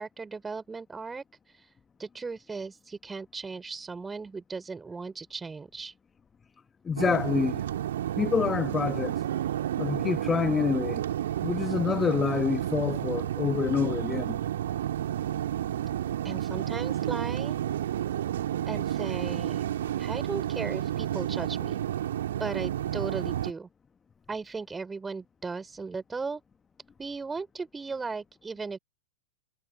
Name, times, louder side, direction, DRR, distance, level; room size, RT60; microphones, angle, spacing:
voice 1, 0.0-1.7 2.0-5.9 16.2-17.5 18.7-19.6 20.0-21.8 22.4-23.7 24.3-26.4 27.0-28.8, right 4 dB, 15° right, 6.3 m, -37 dB
voice 2, 6.8-7.6 8.2-9.2 9.8-11.0 11.4-14.4, left 6 dB, 20° left, 2.0 m, -27 dB
sound 1, 7.0-23.5, right 11 dB, 60° right, 2.5 m, -31 dB
figure-of-eight pair, 90°, 0 cm